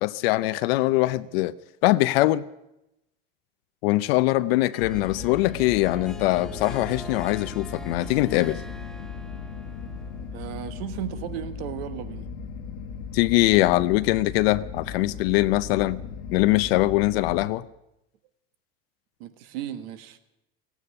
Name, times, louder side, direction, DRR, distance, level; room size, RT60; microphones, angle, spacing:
voice 1, 0.0-1.5 1.8-2.4 3.8-8.6 13.1-16.0 16.3-17.6, left 18 dB, 80° left, 13 dB, 0.7 m, -22 dB
Harp, 4.7-10.5, left 1 dB, ahead, 0.5 m, -43 dB
sound 1, 4.8-17.5, left 6 dB, 60° left, 1.3 m, -37 dB
voice 2, 10.3-12.3 19.2-20.2, right 10 dB, 75° right, 11 dB, 1.4 m, -35 dB
16.5 x 9.0 x 9.8 m, 0.88 s
supercardioid pair, 135°, 30 cm